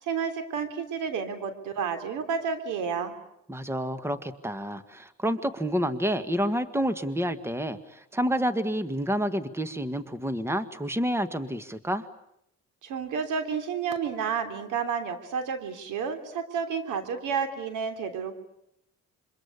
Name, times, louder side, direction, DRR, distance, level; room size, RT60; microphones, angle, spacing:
voice 1, 0.0-3.1 12.8-18.4, right 6 dB, 85° right, 8 dB, 3.2 m, -31 dB
voice 2, 3.5-12.1, equal, 10° right, 11 dB, 1.7 m, -29 dB
26.5 x 24.0 x 8.4 m, 0.77 s
cardioid pair, 90°, 30 cm